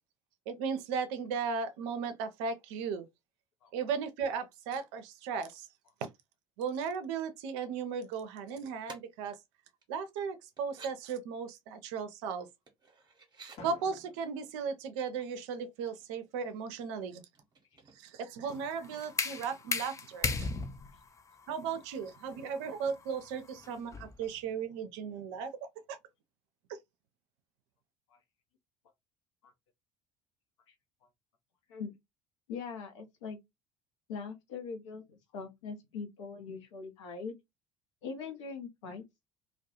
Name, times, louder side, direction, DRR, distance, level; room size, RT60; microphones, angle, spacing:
voice 1, 0.5-3.1 3.7-5.7 6.6-9.4 9.9-12.5 13.6-17.2 18.0-20.5 21.5-26.0, right 6 dB, 65° right, 0.5 m, -36 dB
sound 1, 8.9-9.0 9.8-9.9 10.5-10.9 12.7-13.6 15.4-15.5 15.8-16.3 17.3-18.3 18.6-18.8, right 4 dB, 25° right, 0.8 m, -52 dB
Drum, 13.6-15.5, left 2 dB, 40° left, 0.7 m, -54 dB
sound 2, 18.5-24.3, left 4 dB, 20° left, 0.4 m, -37 dB
voice 2, 32.5-33.4 34.1-37.4 38.0-39.0, left 5 dB, 75° left, 0.7 m, -42 dB
2.2 x 2.1 x 2.7 m
figure-of-eight pair, 60°, 16 cm